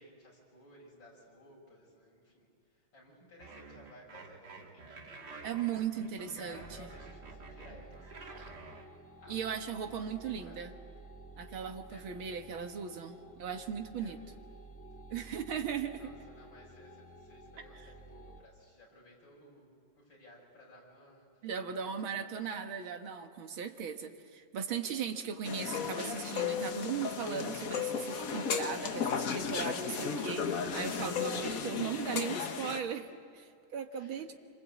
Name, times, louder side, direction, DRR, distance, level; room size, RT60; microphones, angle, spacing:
voice 1, 0.0-5.2 5.8-8.6 9.2-9.5 9.8-10.6 11.9-12.4 14.0-14.4 15.0-15.1 16.0-22.3 23.6-24.0 25.2-25.3 33.9-34.4, left 1 dB, 65° left, -3 dB, 6.8 m, -57 dB
sound 1, 3.4-8.9, right 4 dB, 55° right, 2.2 m, -50 dB
voice 2, 5.4-6.9 9.3-10.7 11.4-14.2 15.1-16.0 17.8-17.9 21.4-34.3, right 7 dB, 80° right, 6 dB, 2.3 m, -38 dB
sound 2, 6.6-18.4, right 2 dB, 10° left, 1.3 m, -52 dB
sound 3, 25.4-32.8, left 6 dB, 50° left, 1.4 m, -35 dB
27.0 x 24.5 x 8.5 m, 2.4 s
omnidirectional pair, 2.2 m